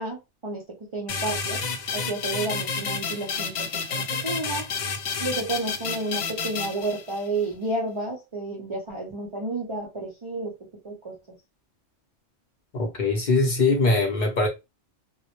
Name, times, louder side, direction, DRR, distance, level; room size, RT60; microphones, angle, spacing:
voice 1, 0.0-1.6 1.9-4.7 5.2-10.5 10.8-11.2, right 2 dB, 50° right, 0.3 m, -31 dB
sound 1, 1.1-7.4, left 5 dB, 85° left, 0.9 m, -30 dB
voice 2, 12.7-14.5, left 3 dB, 50° left, 0.6 m, -22 dB
2.1 x 2.0 x 2.8 m
omnidirectional pair, 1.2 m